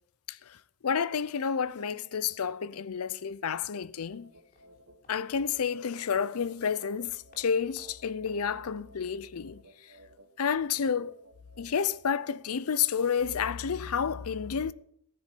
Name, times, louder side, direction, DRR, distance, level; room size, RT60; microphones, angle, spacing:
voice 1, 0.3-0.6 0.8-4.3 5.1-9.9 10.4-11.2 11.6-14.7, left 7 dB, 90° left, 0.5 m, -30 dB
sound 1, 4.0-9.0 9.3-9.4, left 1 dB, 45° left, 3.4 m, -62 dB
sound 2, 4.1-12.3, right 1 dB, 75° right, 1.6 m, -57 dB
14.0 x 10.0 x 5.4 m
head